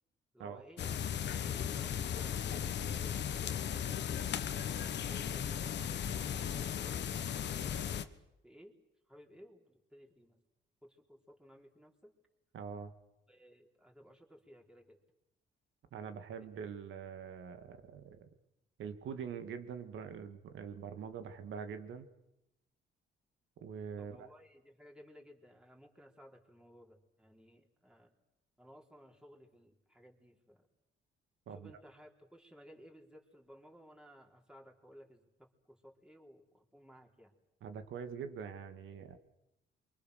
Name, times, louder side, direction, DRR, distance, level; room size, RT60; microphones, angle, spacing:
voice 1, 0.3-3.6 4.6-5.7 6.4-7.1 7.4-8.1 8.4-8.8 9.1-10.4 10.8-12.1 13.3-15.0 16.4-16.5 24.0-28.1 28.6-30.7 31.5-37.3, equal, 5° right, 0 dB, 4.4 m, -58 dB
sound 1, 0.8-8.1, left 9 dB, 60° left, 1.3 m, -36 dB
voice 2, 12.5-12.9 15.9-18.3 18.8-22.1 23.6-24.3 31.5-31.7 37.6-39.2, right 7 dB, 75° right, 8 dB, 2.4 m, -44 dB
28.5 x 24.5 x 6.8 m, 0.91 s
cardioid pair, 90°, 20 cm